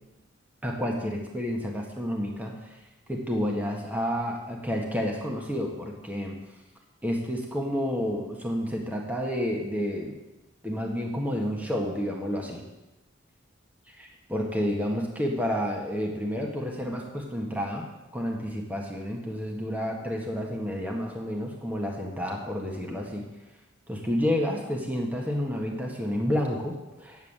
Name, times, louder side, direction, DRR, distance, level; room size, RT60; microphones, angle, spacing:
voice 1, 0.6-2.6 3.1-6.4 7.0-10.1 10.6-12.6 14.0-17.9 18.1-23.3 23.9-27.2, equal, 10° right, 0 dB, 1.6 m, -30 dB
9.6 x 8.3 x 7.4 m, 1.0 s
head